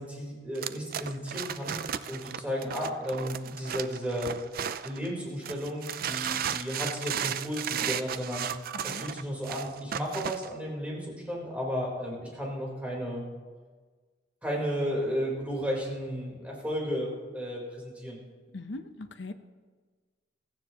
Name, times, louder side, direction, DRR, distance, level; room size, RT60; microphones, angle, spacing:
voice 1, 0.0-1.8 2.1-4.3 4.8-8.5 8.8-13.2 14.4-18.2, equal, 10° right, -3 dB, 3.9 m, -33 dB
sound 1, 0.6-5.1 5.4-10.5, right 9 dB, 50° right, 0.4 m, -34 dB
voice 2, 18.5-19.3, left 2 dB, 70° left, 9 dB, 0.8 m, -40 dB
16.5 x 14.5 x 3.0 m, 1.4 s
head